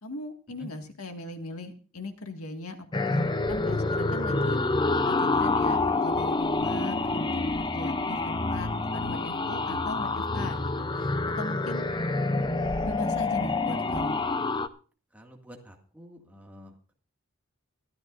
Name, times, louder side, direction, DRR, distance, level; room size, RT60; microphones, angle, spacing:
voice 1, 0.0-4.6 5.0-11.8 12.8-14.2, left 2 dB, 80° left, 5 dB, 1.9 m, -39 dB
sound 1, 2.9-14.7, left 3 dB, 20° left, 0.5 m, -27 dB
voice 2, 15.1-16.9, equal, 5° right, 1 dB, 2.0 m, -48 dB
23.0 x 13.5 x 2.6 m, 0.37 s
head